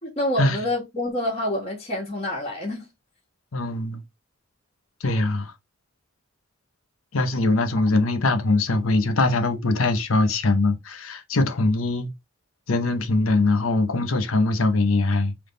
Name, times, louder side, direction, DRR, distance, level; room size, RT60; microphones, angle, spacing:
voice 1, 0.0-2.9, left 1 dB, 30° left, 1.3 m, -27 dB
voice 2, 3.5-4.0 5.0-5.5 7.1-12.1 12.7-15.3, left 2 dB, 85° left, 0.8 m, -22 dB
3.5 x 3.0 x 3.8 m
head